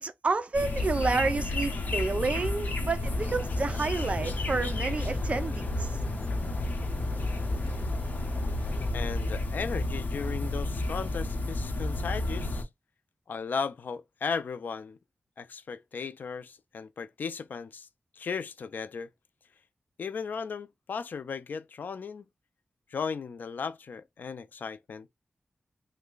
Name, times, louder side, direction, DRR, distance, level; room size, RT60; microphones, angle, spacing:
voice 1, 0.0-5.9, right 3 dB, 45° right, 0.4 m, -30 dB
sound 1, 0.5-12.6, left 2 dB, 70° left, 0.8 m, -31 dB
sound 2, 3.0-8.9, left 1 dB, 20° left, 0.4 m, -40 dB
voice 2, 8.9-12.7 13.3-15.0 15.4-17.9 18.2-19.1 20.0-22.3 22.9-25.1, left 5 dB, 85° left, 0.4 m, -36 dB
3.2 x 2.2 x 3.7 m
wide cardioid pair, 125°, 3 cm